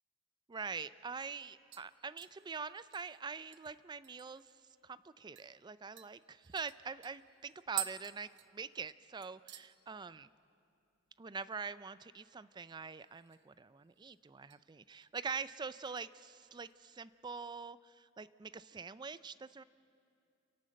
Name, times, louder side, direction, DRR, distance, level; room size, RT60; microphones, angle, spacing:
voice 1, 0.5-4.4 4.8-10.3 11.2-19.6, right 5 dB, 25° right, 16 dB, 0.4 m, -44 dB
sound 1, 1.1-1.4 1.7-4.5 4.9-5.0 5.3-5.5 6.0-9.0 9.2-9.7 10.1-10.5 10.7-10.8 12.9-13.6 13.9-14.6 15.0-15.3 15.8-16.8 17.1-17.2, right 13 dB, 65° right, 0.7 m, -48 dB
29.5 x 11.5 x 7.7 m, 2.5 s
head